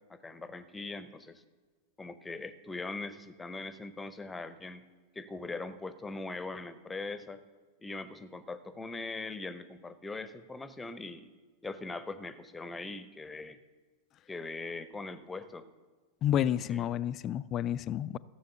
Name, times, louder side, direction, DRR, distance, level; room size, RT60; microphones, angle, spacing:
voice 1, 0.1-1.4 2.0-4.8 5.1-7.4 7.8-11.3 11.6-13.6 14.3-15.7 16.7-16.9, left 3 dB, 10° left, 13 dB, 0.7 m, -41 dB
voice 2, 16.2-18.2, left 10 dB, 30° left, 17 dB, 0.3 m, -30 dB
14.0 x 6.9 x 6.8 m, 1.4 s
figure-of-eight pair, 90°, 0 cm